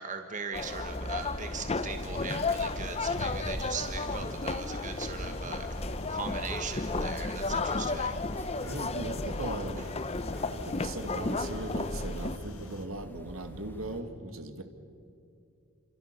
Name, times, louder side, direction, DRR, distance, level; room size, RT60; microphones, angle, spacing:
voice 1, 0.0-8.2 8.5-8.7 9.8-9.9, right 5 dB, 35° right, 6 dB, 1.5 m, -40 dB
sound 1, 0.5-12.4, left 3 dB, 25° left, 0.7 m, -34 dB
sound 2, 0.7-14.0, equal, 10° left, 1.7 m, -42 dB
sound 3, 1.9-12.9, left 1 dB, 75° left, 2.3 m, -45 dB
voice 2, 7.7-8.1 8.5-9.9 10.5-14.6, right 2 dB, 65° right, 7 dB, 2.1 m, -39 dB
29.5 x 27.0 x 6.7 m, 2.6 s
head